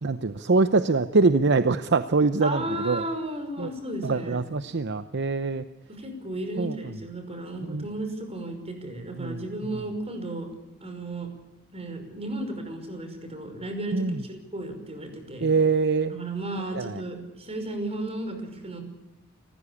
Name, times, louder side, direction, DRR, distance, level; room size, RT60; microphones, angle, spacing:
voice 1, 0.0-3.0 3.6-3.7 4.0-5.6 6.6-6.8 7.7-7.8 9.2-9.4 13.9-14.2 15.4-16.1 16.7-17.0, right 3 dB, 55° right, 11 dB, 0.8 m, -23 dB
voice 2, 2.4-4.4 5.9-10.5 10.8-11.3 11.7-15.5 16.1-18.8, right 1 dB, 30° right, 6 dB, 5.6 m, -34 dB
30.0 x 15.0 x 8.5 m, 0.94 s
head